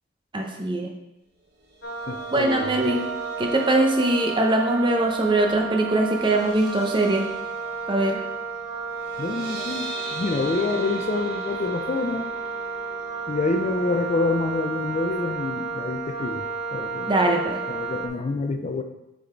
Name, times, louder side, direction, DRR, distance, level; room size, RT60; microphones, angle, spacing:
voice 1, 0.3-0.9 2.3-3.1 3.4-7.2 7.9-8.2 17.1-17.6, right 2 dB, 25° right, 2 dB, 0.8 m, -22 dB
sound 1, 1.6-15.9 16.2-16.5 16.8-16.9, right 4 dB, 55° right, 1.2 m, -41 dB
Wind instrument woodwind instrument, 1.8-18.1, right 4 dB, 55° left, 0.9 m, -32 dB
voice 2, 2.1-2.7 9.2-12.3 13.3-16.4 16.7-17.2 17.7-18.8, left 3 dB, 35° left, 6 dB, 0.4 m, -27 dB
6.8 x 4.0 x 4.4 m, 0.92 s
head